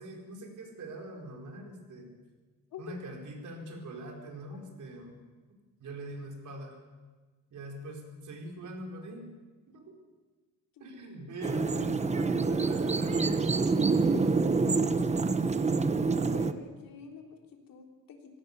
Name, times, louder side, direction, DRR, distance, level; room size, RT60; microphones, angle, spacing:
voice 1, 0.0-2.2 2.8-5.2 5.8-6.8 7.5-9.3 9.7-10.0 10.8-14.5, right 1 dB, 60° right, 2 dB, 4.8 m, -43 dB
sound 1, 11.4-16.5, right 4 dB, 20° right, 1.0 m, -27 dB
voice 2, 15.8-18.4, left 6 dB, 80° left, 2 dB, 3.6 m, -48 dB
27.0 x 16.5 x 6.9 m, 1.3 s
cardioid pair, 120°, 33 cm